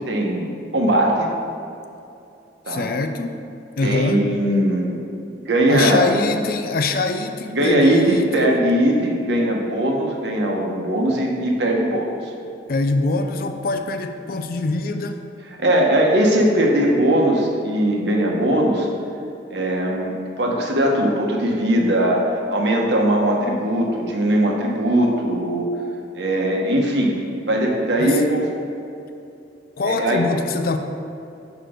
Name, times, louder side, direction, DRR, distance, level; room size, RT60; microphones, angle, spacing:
voice 1, 0.1-1.3 2.6-2.8 3.8-5.0 5.3-6.1 7.5-12.1 15.6-18.9 19.5-25.7 26.1-27.1 27.5-28.4 29.9-30.2, right 1 dB, 70° right, 0 dB, 1.0 m, -20 dB
voice 2, 2.7-3.5 3.8-4.3 5.7-8.5 12.7-15.2 28.0-28.2 29.8-30.8, left 3 dB, 50° left, 7 dB, 0.4 m, -23 dB
6.0 x 4.9 x 5.0 m, 2.7 s
head